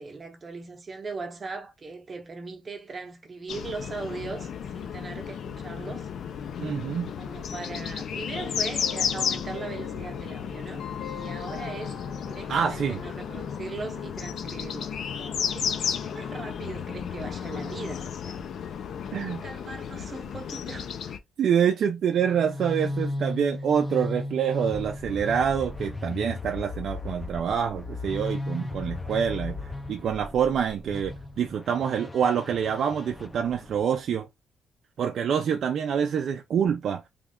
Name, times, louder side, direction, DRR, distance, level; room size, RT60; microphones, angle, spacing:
voice 1, 0.0-6.1 7.2-12.0 12.2-15.7 16.0-18.4 19.0-21.0, right 3 dB, 30° right, 0.8 m, -39 dB
sound 1, 3.5-21.2, left 7 dB, 60° left, 0.5 m, -33 dB
voice 2, 6.6-7.1 12.5-13.0 19.1-19.4 21.4-34.3 35.0-37.0, right 8 dB, 55° right, 0.4 m, -26 dB
Keyboard (musical), 8.4-13.3, left 6 dB, 80° left, 1.5 m, -43 dB
sound 2, 22.1-34.0, left 2 dB, 15° left, 0.5 m, -35 dB
3.1 x 2.4 x 3.5 m
cardioid pair, 155°, 0 cm